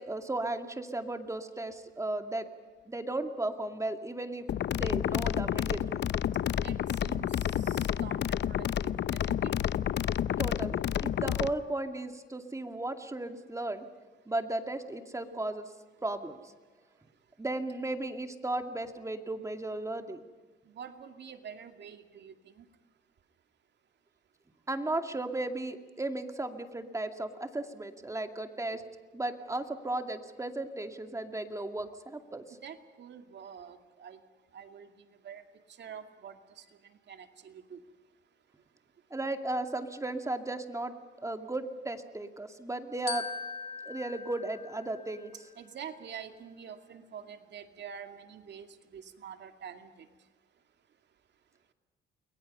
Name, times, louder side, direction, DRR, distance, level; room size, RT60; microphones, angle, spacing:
voice 1, 0.0-2.5 2.9-4.5 4.7-6.0 10.4-13.9 14.3-15.7 16.0-16.5 17.4-20.2 24.7-28.8 29.1-32.4 39.1-40.9 41.2-43.3 43.8-45.3, right 2 dB, 15° right, 6 dB, 2.4 m, -35 dB
sound 1, 4.5-11.5, left 10 dB, 60° left, 0.7 m, -30 dB
voice 2, 6.6-8.6 8.8-9.5 20.7-22.6 32.6-34.2 34.5-35.4 35.8-37.8 45.6-50.1, right 7 dB, 60° right, 6 dB, 2.4 m, -47 dB
Glockenspiel, 43.1-45.5, left 4 dB, 30° left, 2.5 m, -41 dB
30.0 x 22.0 x 5.5 m, 1.3 s
cardioid pair, 90°, 20 cm